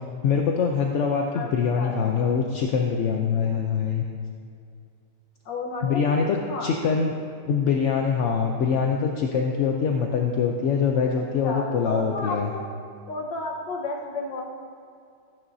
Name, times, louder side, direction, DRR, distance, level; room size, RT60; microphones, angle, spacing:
voice 1, 0.2-4.0 5.8-7.1 7.5-12.5, left 6 dB, 60° left, 1 dB, 0.8 m, -24 dB
voice 2, 1.3-2.3 5.4-6.7 11.4-12.7 13.1-14.4, left 3 dB, 85° left, 0 dB, 1.8 m, -32 dB
15.5 x 10.5 x 2.7 m, 2.3 s
omnidirectional pair, 1.9 m